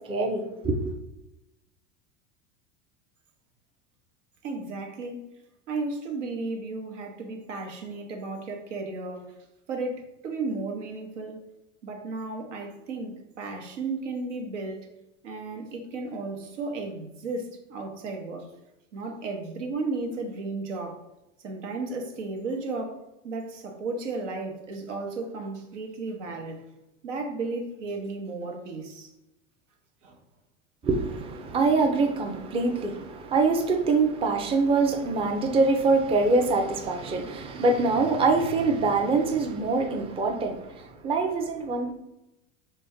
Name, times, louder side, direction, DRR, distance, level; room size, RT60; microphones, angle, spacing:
voice 1, 0.1-0.9 30.8-41.9, right 3 dB, 15° right, 4 dB, 0.4 m, -24 dB
voice 2, 4.4-5.3 5.7-9.3 9.7-11.4 11.8-14.9 15.2-18.5 18.9-21.0 21.4-26.6 27.0-29.1 30.0-30.2, right 3 dB, 90° right, 3 dB, 0.9 m, -34 dB
4.0 x 2.2 x 3.5 m, 0.91 s
hypercardioid pair, 105°, 36 cm